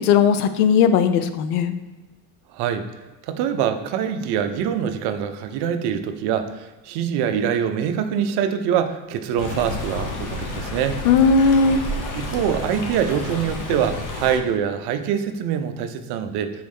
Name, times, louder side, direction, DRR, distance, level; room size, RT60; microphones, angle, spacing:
voice 1, 0.0-1.7 11.0-11.8, left 6 dB, 85° left, 10 dB, 0.5 m, -17 dB
voice 2, 2.5-2.9 3.2-11.0 12.2-16.5, right 8 dB, 60° right, 9 dB, 0.6 m, -24 dB
Stream, 9.4-14.4, left 2 dB, 45° left, 1.1 m, -30 dB
4.7 x 3.1 x 3.5 m, 1.2 s
hypercardioid pair, 80°, 44 cm